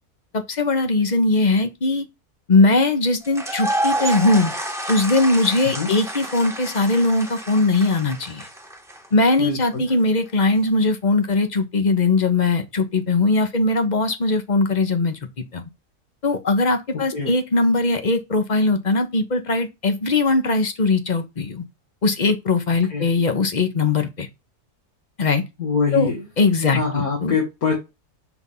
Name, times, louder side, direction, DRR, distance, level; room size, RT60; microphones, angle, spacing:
voice 1, 0.3-2.1 2.5-4.5 4.9-8.5 9.1-15.2 15.5-15.6 16.2-21.6 22.0-24.3 25.2-25.4 25.9-26.1 26.4-27.3, left 3 dB, 35° left, 0.9 m, -20 dB
sound 1, 3.2-9.2, right 1 dB, ahead, 1.2 m, -29 dB
voice 2, 9.4-9.8 16.9-17.3 22.9-23.1 25.6-26.2 26.7-27.7, left 5 dB, 85° left, 2.3 m, -24 dB
6.0 x 3.6 x 5.4 m
omnidirectional pair, 1.5 m